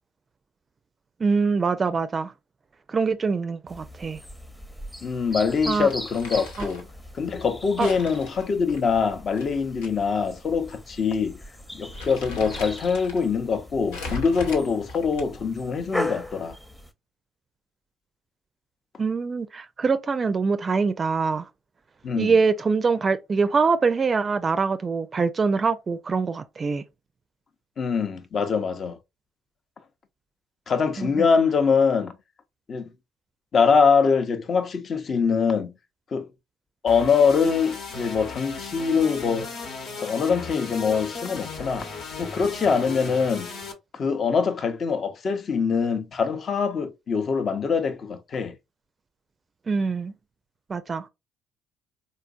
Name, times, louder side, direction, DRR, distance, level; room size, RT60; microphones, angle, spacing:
voice 1, 1.2-2.3 2.9-4.2 5.7-5.9 6.6-6.7 7.8-7.9 19.0-21.5 22.2-26.8 31.0-31.3 49.7-50.1 50.7-51.1, right 4 dB, 35° right, 0.4 m, -24 dB
sound 1, 3.7-16.9, left 1 dB, 10° left, 0.7 m, -39 dB
voice 2, 5.0-6.9 7.1-11.4 11.7-16.5 22.0-22.4 27.8-29.0 30.7-32.1 32.7-32.9 33.5-35.7 36.1-36.3 36.8-39.5 40.0-41.9 42.2-43.5 43.9-48.6, left 5 dB, 45° left, 0.6 m, -23 dB
Crumpling crinkling, 5.9-6.9 7.8-9.9 10.2-10.3 11.1-11.3 11.6-13.2 13.9-15.5, left 3 dB, 80° left, 0.8 m, -38 dB
sound 2, 36.9-43.7, left 4 dB, 65° left, 1.0 m, -36 dB
4.0 x 2.5 x 2.4 m
hypercardioid pair, 55°, 0 cm